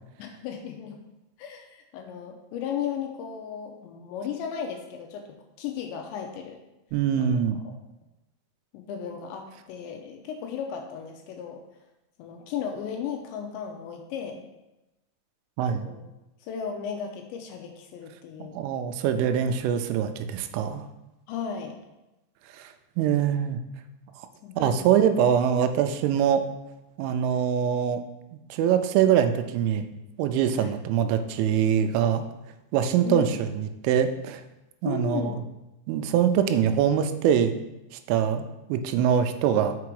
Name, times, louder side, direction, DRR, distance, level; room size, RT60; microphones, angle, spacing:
voice 1, 0.2-1.0 1.4-6.6 7.2-7.4 7.6-7.7 8.7-11.6 12.2-14.4 15.8-16.0 16.4-18.6 21.3-21.8 24.4-24.9 30.5-30.7 33.0-33.4 34.8-35.4, left 8 dB, 85° left, 3 dB, 2.8 m, -35 dB
voice 2, 6.9-7.6 15.6-15.8 18.5-20.9 22.5-23.6 24.6-26.5 27.0-28.0 28.5-29.9 30.2-32.2 32.7-34.4 34.8-35.3 35.9-37.6 37.9-39.8, right 8 dB, 85° right, 9 dB, 3.1 m, -24 dB
6.0 x 5.9 x 4.7 m, 0.98 s
omnidirectional pair, 5.5 m